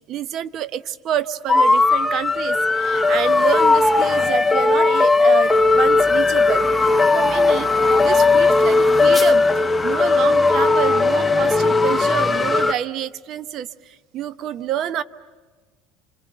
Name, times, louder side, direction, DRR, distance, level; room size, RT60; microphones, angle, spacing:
voice 1, 0.1-6.7 7.1-7.7 8.0-9.4 9.8-15.0, right 10 dB, 50° right, 13 dB, 0.9 m, -28 dB
sound 1, 1.5-12.7, left 3 dB, 15° left, 0.8 m, -17 dB
29.5 x 27.0 x 6.8 m, 1.4 s
supercardioid pair, 95°, 0 cm